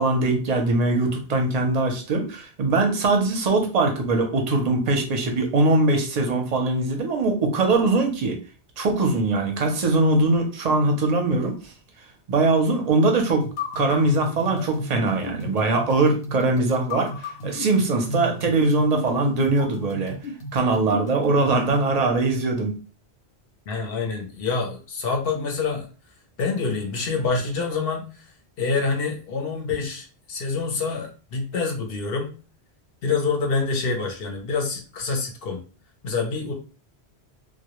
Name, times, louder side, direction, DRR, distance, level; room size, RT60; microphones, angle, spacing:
voice 1, 0.0-8.4 8.8-11.5 12.3-13.5 13.7-20.2 20.5-22.8, right 3 dB, 50° right, 4 dB, 0.5 m, -21 dB
sound 1, 13.4-21.9, left 1 dB, 90° left, 0.9 m, -34 dB
voice 2, 23.7-25.9 26.4-28.1 28.6-32.3 33.0-35.6 36.0-36.5, left 4 dB, 65° left, 2 dB, 0.7 m, -26 dB
2.1 x 2.0 x 2.9 m, 0.37 s
omnidirectional pair, 1.1 m